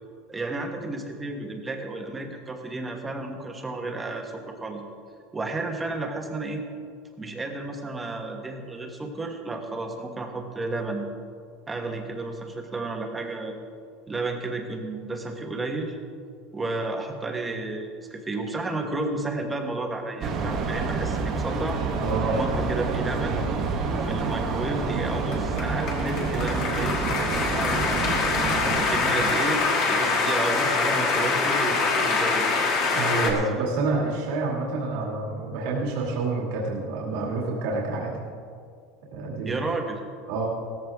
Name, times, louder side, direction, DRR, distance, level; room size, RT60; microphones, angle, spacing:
voice 1, 0.3-4.8 5.3-6.7 7.2-11.0 11.7-13.6 14.1-16.0 16.5-21.8 22.3-23.4 23.8-27.9 28.5-32.5 33.2-33.4 39.4-40.0, right 2 dB, 10° right, 3 dB, 1.3 m, -32 dB
sound 1, 20.2-29.4, right 4 dB, 30° right, 1.5 m, -28 dB
voice 2, 22.0-22.4 32.9-38.1 39.1-39.6 40.3-40.5, right 3 dB, 65° right, -3 dB, 2.3 m, -28 dB
sound 2, 24.0-33.3, left 4 dB, 40° left, 2.0 m, -25 dB
16.5 x 14.0 x 3.5 m, 2.2 s
supercardioid pair, 170°, 0 cm